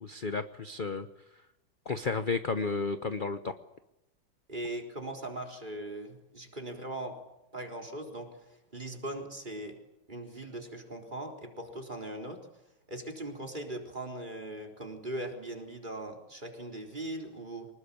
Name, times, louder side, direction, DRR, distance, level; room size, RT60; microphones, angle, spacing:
voice 1, 0.0-1.1 1.9-3.5, left 4 dB, 40° left, 9 dB, 0.7 m, -32 dB
voice 2, 4.5-7.2 7.5-9.8 10.1-12.4 12.9-17.7, right 1 dB, 20° right, 2 dB, 4.1 m, -40 dB
25.0 x 20.5 x 8.6 m, 0.88 s
omnidirectional pair, 2.3 m